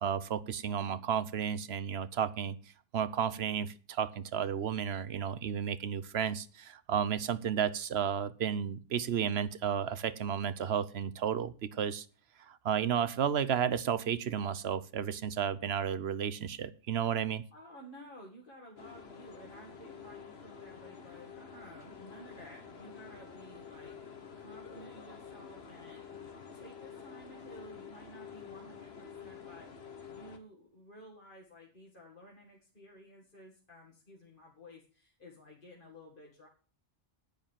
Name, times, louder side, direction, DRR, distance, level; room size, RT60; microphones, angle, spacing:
voice 1, 0.0-2.6 2.9-12.1 12.4-17.4, right 8 dB, 90° right, 16 dB, 1.1 m, -32 dB
voice 2, 17.5-26.1 26.4-29.7 30.1-36.5, equal, 55° left, -2 dB, 2.2 m, -53 dB
sound 1, 18.8-30.4, left 6 dB, 80° left, 1.7 m, -49 dB
10.5 x 9.1 x 7.4 m, 0.40 s
omnidirectional pair, 1.0 m